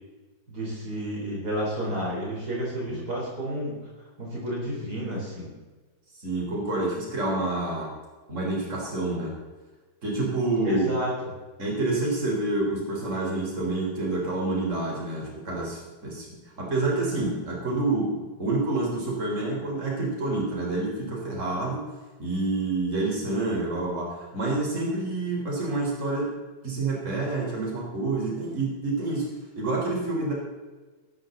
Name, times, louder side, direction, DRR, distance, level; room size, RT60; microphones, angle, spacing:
voice 1, 0.5-3.8 4.2-5.5 10.6-11.1, equal, 55° right, -4 dB, 4.4 m, -30 dB
voice 2, 6.2-7.9 8.3-9.3 10.0-10.9 11.6-16.3 16.6-21.8 22.2-26.3 26.6-29.3 29.6-30.3, right 2 dB, 40° right, -2 dB, 4.5 m, -28 dB
18.0 x 13.0 x 4.0 m, 1.3 s
omnidirectional pair, 2.1 m